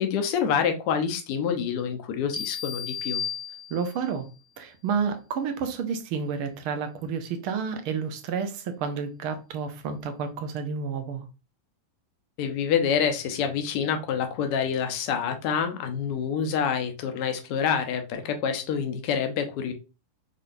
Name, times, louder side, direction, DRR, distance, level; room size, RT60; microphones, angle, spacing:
voice 1, 0.0-3.2 12.4-19.7, left 7 dB, 45° left, 0.7 m, -27 dB
sound 1, 2.3-4.1, left 7 dB, ahead, 0.5 m, -34 dB
voice 2, 3.7-4.3 4.6-11.2, right 6 dB, 45° right, 0.7 m, -30 dB
3.9 x 3.3 x 2.6 m
figure-of-eight pair, 90°, 0 cm